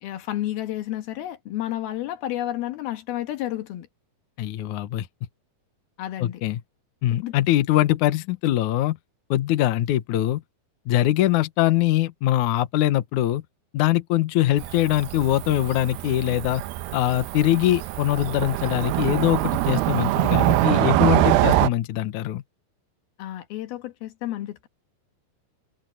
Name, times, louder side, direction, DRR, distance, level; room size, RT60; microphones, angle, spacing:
voice 1, 0.0-3.9 6.0-6.4 7.1-7.4 23.2-24.7, left 13 dB, 80° left, 3.4 m, -31 dB
voice 2, 4.4-5.1 6.2-6.6 7.0-9.0 9.3-10.4 10.9-13.4 13.7-16.6 16.9-22.4, left 14 dB, 65° left, 2.2 m, -22 dB
Cricket / Motor vehicle (road), 14.6-21.7, right 15 dB, 90° right, 2.6 m, -24 dB
omnidirectional pair, 4.3 m